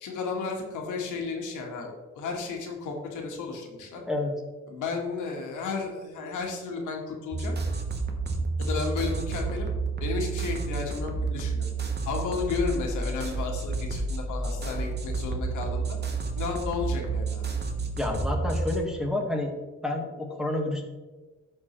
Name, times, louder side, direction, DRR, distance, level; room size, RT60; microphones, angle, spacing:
voice 1, 0.0-4.0 4.7-7.5 8.6-9.7 10.0-11.6 12.1-16.0 16.3-17.5, left 4 dB, 80° left, 1 dB, 1.6 m, -33 dB
sound 1, 7.3-18.8, right 3 dB, 35° right, 1.2 m, -30 dB
voice 2, 18.0-19.5 19.8-20.9, left 2 dB, ahead, -2 dB, 1.6 m, -29 dB
11.5 x 4.4 x 3.1 m, 1.2 s
cardioid pair, 90°, 30 cm